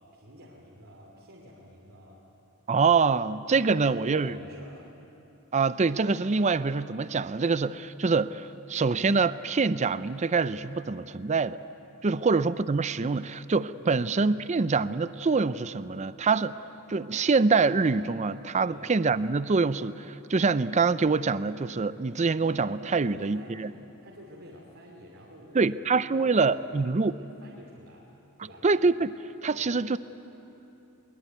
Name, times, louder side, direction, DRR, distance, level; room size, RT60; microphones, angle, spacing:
voice 1, 0.0-2.2 3.6-4.9 12.1-12.3 13.8-14.0 18.5-18.8 22.8-23.7 24.0-28.0 28.4-28.6 29.6-29.8, equal, 70° right, -3 dB, 2.9 m, -49 dB
voice 2, 2.7-4.4 5.5-11.6 12.0-16.6 16.9-23.7 25.5-27.2 28.6-29.2 29.4-30.0, right 4 dB, 30° right, 15 dB, 0.5 m, -25 dB
22.5 x 21.5 x 9.3 m, 2.9 s
head